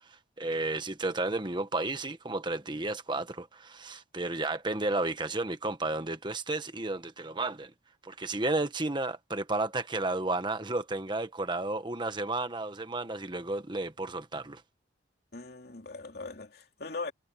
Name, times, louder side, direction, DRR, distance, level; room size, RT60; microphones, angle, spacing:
voice 1, 0.1-7.7 8.0-14.6, right 2 dB, 25° right, 1.4 m, -32 dB
voice 2, 15.3-17.1, left 3 dB, 55° left, 3.1 m, -40 dB
head